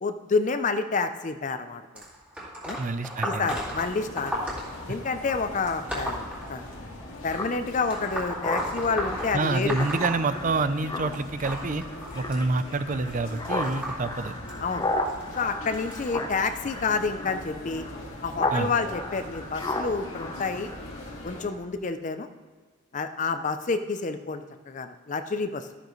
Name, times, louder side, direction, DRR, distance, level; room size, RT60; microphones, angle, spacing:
voice 1, 0.0-2.0 2.6-2.8 3.2-4.3 4.9-6.6 7.2-9.8 14.6-14.9 15.4-17.8 18.2-20.8 21.2-22.3 22.9-25.7, left 4 dB, 35° left, 9 dB, 0.5 m, -29 dB
sound 1, 1.9-7.1 7.8-10.9 11.1-16.5 17.3-17.5 18.6-18.7 19.6-19.7 20.4-20.5, equal, 5° right, 2.2 m, -35 dB
voice 2, 2.8-3.5 9.3-11.8 12.1-14.3 18.5-18.7, right 3 dB, 40° right, 12 dB, 0.5 m, -27 dB
sound 2, 3.5-21.5, left 1 dB, 85° left, 2.0 m, -41 dB
Speech synthesizer, 7.3-18.6 18.9-21.1, left 2 dB, 20° left, 0.8 m, -34 dB
13.0 x 9.8 x 3.1 m, 1.5 s
head